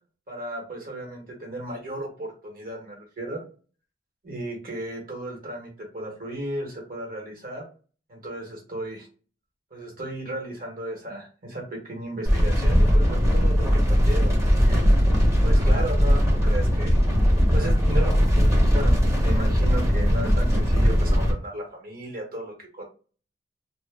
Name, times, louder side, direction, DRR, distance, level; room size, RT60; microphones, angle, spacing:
voice 1, 0.3-3.4 4.2-7.7 8.1-9.1 9.7-14.3 14.7-15.0 15.4-17.0 17.5-18.9 19.2-22.8, right 1 dB, 55° right, 0 dB, 1.0 m, -34 dB
sound 1, 12.2-21.3, equal, 15° right, 0.7 m, -19 dB
2.1 x 2.0 x 3.2 m, 0.38 s
head